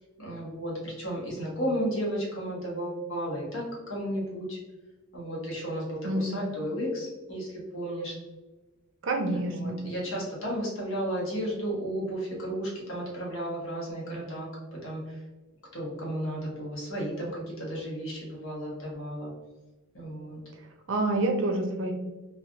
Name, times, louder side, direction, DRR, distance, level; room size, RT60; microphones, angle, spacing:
voice 1, 0.2-4.6 5.1-8.2 9.3-15.2 15.7-19.3 19.9-20.4, equal, 75° left, -4 dB, 1.2 m, -33 dB
voice 2, 6.0-6.4 9.0-9.8 20.5-20.6 20.9-21.9, right 2 dB, 65° right, 3 dB, 0.5 m, -27 dB
3.3 x 2.4 x 2.4 m, 1.1 s
head